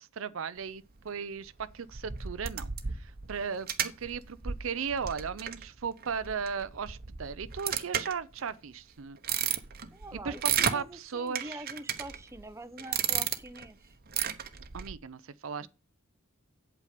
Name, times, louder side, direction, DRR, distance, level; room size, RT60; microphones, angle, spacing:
voice 1, 0.0-9.2 10.2-11.7 14.7-15.7, right 6 dB, 70° right, 0.5 m, -36 dB
sound 1, 1.6-8.5 9.0-10.8 11.4-12.4 12.8-13.7 14.1-14.9, right 8 dB, 45° right, 0.9 m, -33 dB
voice 2, 9.9-13.9 15.6-15.7, right 1 dB, 15° right, 0.7 m, -45 dB
8.4 x 8.1 x 5.0 m
head